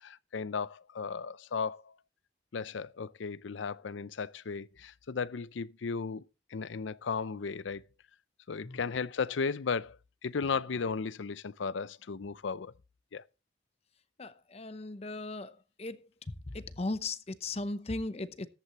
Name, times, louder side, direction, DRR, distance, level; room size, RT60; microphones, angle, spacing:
voice 1, 0.0-1.9 2.5-6.2 6.5-7.8 8.5-12.7 13.1-13.2, left 5 dB, 80° left, 0.5 m, -35 dB
voice 2, 14.2-15.5 15.8-16.0 16.5-18.5, left 2 dB, 35° left, 0.7 m, -37 dB
14.0 x 11.5 x 3.0 m
head